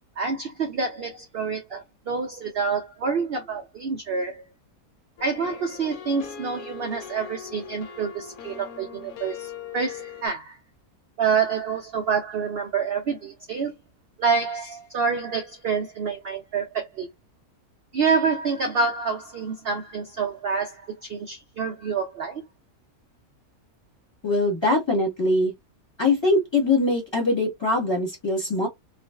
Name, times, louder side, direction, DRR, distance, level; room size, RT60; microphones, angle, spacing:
voice 1, 0.2-4.4 5.2-10.6 11.2-13.7 14.2-17.1 17.9-22.4, right 5 dB, 75° right, 0.5 m, -27 dB
sound 1, 5.2-10.3, left 7 dB, 80° left, 1.1 m, -40 dB
voice 2, 24.2-25.5 26.0-28.7, left 2 dB, 20° left, 1.0 m, -22 dB
2.4 x 2.4 x 2.2 m
omnidirectional pair, 1.6 m